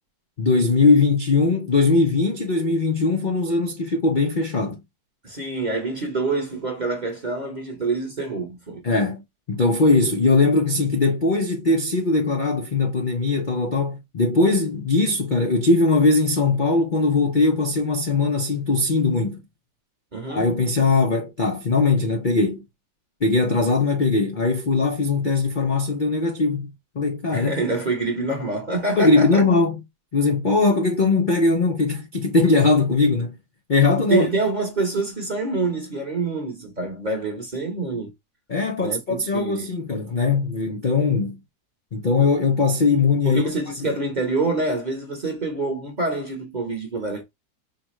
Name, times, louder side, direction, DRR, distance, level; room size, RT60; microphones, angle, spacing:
voice 1, 0.4-4.8 8.8-9.2 9.5-19.4 20.3-22.6 23.2-27.5 29.0-29.8 30.1-33.4 33.7-34.3 38.5-41.4 41.9-43.4, left 3 dB, 60° left, 0.5 m, -20 dB
voice 2, 5.2-8.8 20.1-20.4 27.3-29.4 34.1-38.1 38.8-39.7 43.2-47.2, right 3 dB, 30° right, 1.0 m, -26 dB
5.0 x 2.4 x 3.1 m
omnidirectional pair, 2.0 m